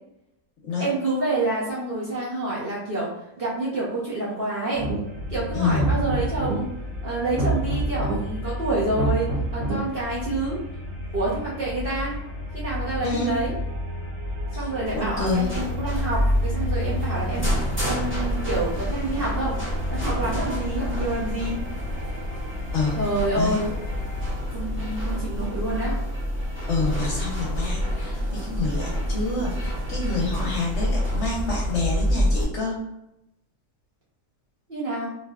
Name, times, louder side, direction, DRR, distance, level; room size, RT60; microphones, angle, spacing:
voice 1, 0.8-3.1 3.4-4.9 5.3-6.7 7.0-9.3 9.5-10.6 11.1-12.2 12.5-13.5 14.5-17.5 17.8-19.6 19.9-21.6 23.0-23.7 24.5-26.0 34.7-35.1, right 2 dB, 50° right, -7 dB, 0.7 m, -28 dB
sound 1, 4.7-5.2 5.6-6.6 7.2-8.2 8.8-9.8, right 2 dB, 75° right, 1.2 m, -26 dB
sound 2, 5.0-24.3, left 1 dB, 5° left, 1.1 m, -33 dB
voice 2, 5.5-6.0 13.0-13.4 14.6-14.7 14.9-15.5 22.7-23.1 23.4-23.6 26.7-32.8, left 3 dB, 60° left, -3 dB, 0.9 m, -27 dB
sound 3, 14.9-32.4, equal, 15° right, 0.5 m, -28 dB
3.2 x 2.6 x 2.3 m, 0.85 s
omnidirectional pair, 1.6 m